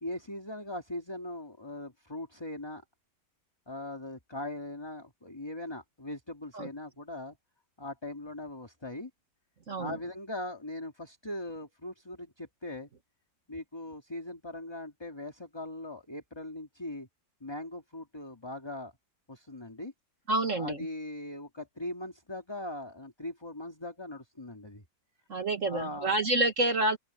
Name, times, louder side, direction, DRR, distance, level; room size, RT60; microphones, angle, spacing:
voice 1, 0.0-2.8 3.7-7.4 7.8-9.1 9.8-12.9 13.5-17.1 17.4-18.9 19.3-19.9 20.6-24.8 25.6-26.1, left 1 dB, 15° left, 2.4 m, -40 dB
voice 2, 20.3-20.9 25.3-27.0, right 2 dB, 45° right, 1.8 m, -28 dB
open air
omnidirectional pair, 2.0 m